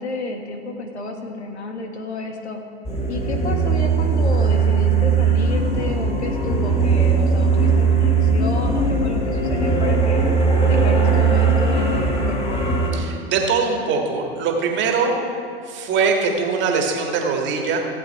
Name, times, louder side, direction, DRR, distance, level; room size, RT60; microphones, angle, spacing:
voice 1, 0.0-2.6 3.1-10.3 10.6-12.7, left 2 dB, 90° left, 4 dB, 1.5 m, -31 dB
sound 1, 2.8-12.9, right 4 dB, 20° left, 2.4 m, -19 dB
voice 2, 12.9-15.1 15.7-17.8, right 5 dB, 35° right, 2 dB, 1.8 m, -22 dB
16.0 x 7.5 x 4.6 m, 2.5 s
hypercardioid pair, 110°, 32 cm